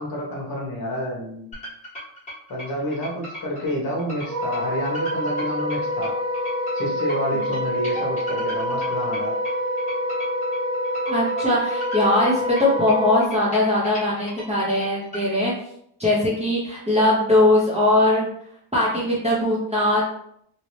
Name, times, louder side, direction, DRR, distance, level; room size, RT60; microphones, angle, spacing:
voice 1, 0.0-1.5 2.5-6.1 6.7-9.4, equal, 45° left, -2 dB, 1.1 m, -29 dB
sound 1, 1.5-15.2, equal, 15° left, 1.4 m, -38 dB
Wind instrument woodwind instrument, 4.2-13.2, equal, 75° right, 1.4 m, -26 dB
voice 2, 11.1-15.5 16.0-18.3 18.7-20.1, left 1 dB, 15° right, -6 dB, 0.6 m, -20 dB
3.0 x 2.8 x 3.1 m, 0.70 s
cardioid pair, 170°, 49 cm